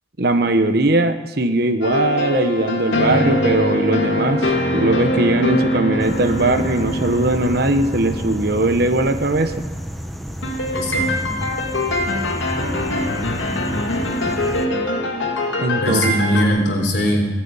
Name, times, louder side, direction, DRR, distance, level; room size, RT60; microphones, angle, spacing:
voice 1, 0.2-9.5 15.6-16.1, right 2 dB, 55° right, 8 dB, 1.1 m, -19 dB
sound 1, 1.8-9.6 10.4-16.4, left 1 dB, 90° left, 2.1 m, -23 dB
sound 2, 6.0-14.7, equal, ahead, 0.8 m, -31 dB
voice 2, 10.7-11.4 15.8-17.3, equal, 60° left, 2 dB, 3.6 m, -20 dB
17.0 x 9.2 x 8.8 m, 1.1 s
head